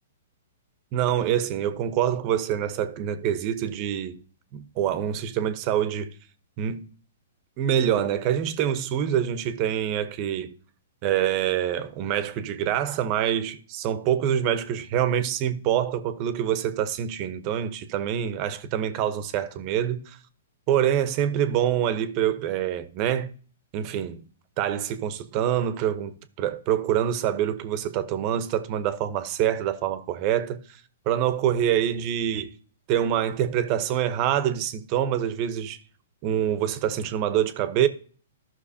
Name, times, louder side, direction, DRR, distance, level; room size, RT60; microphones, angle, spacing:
voice 1, 0.9-4.2 4.5-6.1 6.6-6.9 7.6-10.5 11.0-20.2 20.7-23.3 23.7-24.2 24.6-30.8 31.1-32.6 32.9-35.8 36.2-37.9, right 10 dB, 40° right, 1.0 m, -25 dB
14.0 x 6.1 x 2.8 m
hypercardioid pair, 130°, 0 cm